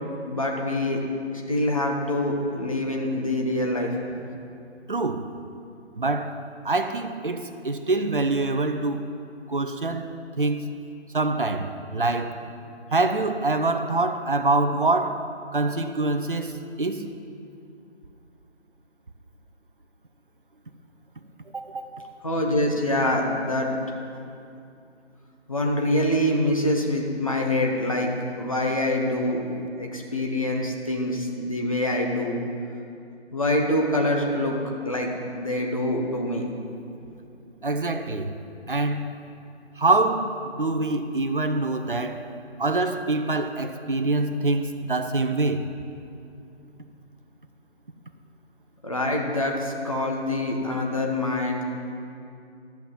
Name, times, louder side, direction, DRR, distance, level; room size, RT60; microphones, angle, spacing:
voice 1, 0.2-1.0 1.3-4.0 22.2-23.7 25.5-28.1 28.4-29.4 29.8-32.4 33.3-34.6 34.8-36.4 48.8-51.6, left 1 dB, 30° left, 1.0 m, -25 dB
voice 2, 4.9-5.3 6.0-6.4 6.6-9.1 9.5-10.1 10.4-10.7 11.1-12.4 12.9-17.0 21.5-21.9 37.6-38.3 38.7-39.2 39.8-42.3 42.6-45.7, right 2 dB, 50° right, 0.7 m, -25 dB
13.0 x 5.9 x 7.2 m
figure-of-eight pair, 165°, 34 cm